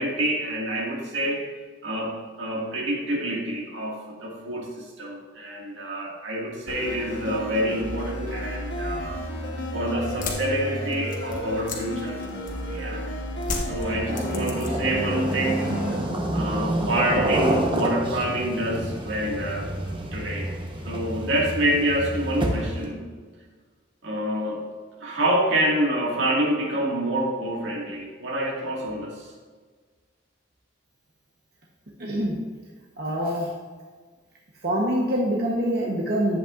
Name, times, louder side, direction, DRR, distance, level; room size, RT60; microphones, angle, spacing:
voice 1, 0.0-1.4 1.8-9.2 9.7-12.2 12.5-13.0 13.6-15.7 16.3-19.7 20.1-20.5 20.8-23.1 24.0-24.7 25.0-29.3, right 1 dB, 80° right, -2 dB, 1.9 m, -27 dB
sound 1, 6.7-16.0, equal, 65° left, 1.2 m, -32 dB
sound 2, 10.1-12.8 13.4-15.0 15.3-15.8, left 3 dB, 45° left, 1.2 m, -34 dB
sound 3, 13.8-22.9, right 1 dB, 25° right, 0.9 m, -28 dB
voice 2, 32.0-32.4 33.0-33.5 34.6-36.4, equal, 55° right, -3 dB, 1.0 m, -25 dB
11.0 x 8.1 x 2.5 m, 1.5 s
head